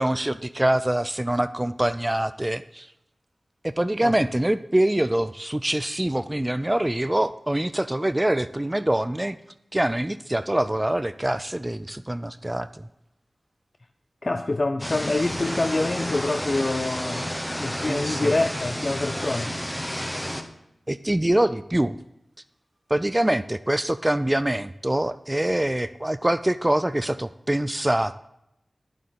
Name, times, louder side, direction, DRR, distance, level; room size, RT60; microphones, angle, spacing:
voice 1, 0.0-2.9 3.6-9.4 9.7-12.9 17.9-18.4 20.9-22.0 22.9-28.1, right 1 dB, 20° right, 0.3 m, -24 dB
voice 2, 14.2-17.3 17.6-19.6, left 2 dB, 50° left, 0.5 m, -26 dB
sound 1, 14.8-20.4, equal, 10° left, 1.0 m, -31 dB
10.0 x 7.6 x 4.0 m
cardioid pair, 40°, 0 cm